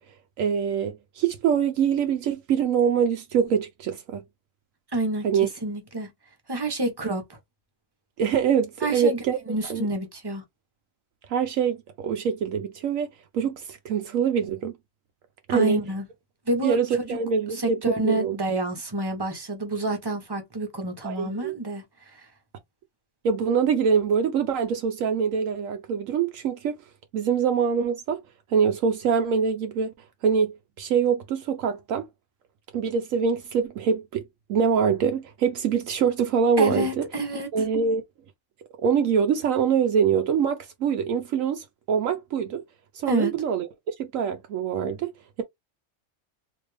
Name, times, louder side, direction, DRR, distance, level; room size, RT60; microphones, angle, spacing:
voice 1, 0.4-4.2 5.2-5.5 8.2-9.4 9.7-9.9 11.3-13.1 13.3-14.8 15.5-15.8 16.6-18.4 21.0-21.6 23.2-26.7 27.1-28.2 28.5-29.9 30.2-32.1 32.7-34.2 34.5-37.0 37.5-38.0 38.8-42.6 42.9-45.1, right 6 dB, 75° right, 1.0 m, -24 dB
voice 2, 4.9-6.1 6.5-7.4 8.8-9.2 9.5-10.4 15.5-16.0 16.5-17.2 17.6-22.3 36.6-37.5 43.1-43.3, right 1 dB, 20° right, 1.0 m, -28 dB
3.4 x 2.8 x 3.2 m
omnidirectional pair, 1.4 m